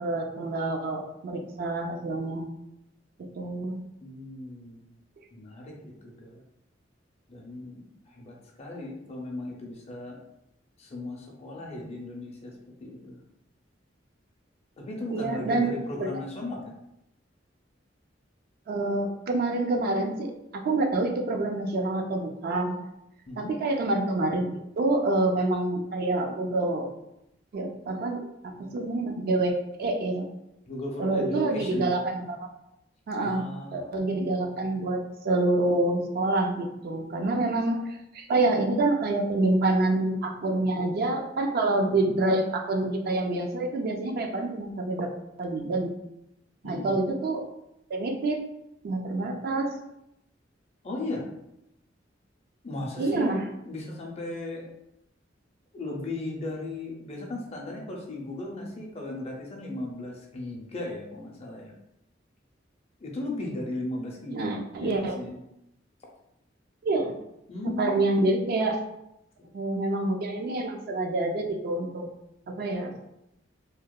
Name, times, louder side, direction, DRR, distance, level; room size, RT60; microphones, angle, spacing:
voice 1, 0.0-2.5 3.2-3.8 15.1-15.7 16.0-16.1 18.7-22.8 23.4-24.5 24.8-26.9 27.5-30.3 31.0-32.5 33.1-45.1 45.4-45.9 46.6-47.4 47.9-48.4 48.8-49.7 53.0-53.4 64.3-65.2 66.8-67.1 67.8-68.8 69.5-72.1 72.5-72.9, right 2 dB, 55° right, 3 dB, 0.3 m, -27 dB
voice 2, 4.0-4.9 5.3-6.4 7.3-10.2 10.8-12.5 12.8-13.2 14.8-16.7 23.3-23.5 30.7-31.9 33.2-34.1 46.6-47.0 50.8-51.3 52.6-53.4 53.6-54.7 55.7-61.7 63.0-64.5 64.8-65.4 67.5-68.1 69.4-69.5, left 2 dB, 35° left, -1 dB, 0.5 m, -36 dB
2.8 x 2.1 x 2.2 m, 0.84 s
head